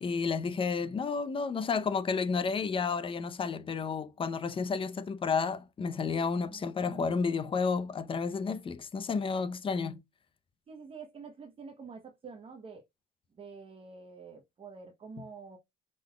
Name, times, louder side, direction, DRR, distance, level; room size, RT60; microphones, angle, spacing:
voice 1, 0.0-10.0, left 5 dB, 30° left, 0.6 m, -31 dB
voice 2, 6.5-7.1 10.7-12.8 13.4-15.6, right 5 dB, 35° right, 0.9 m, -47 dB
5.5 x 3.8 x 2.2 m
cardioid pair, 110°, 17 cm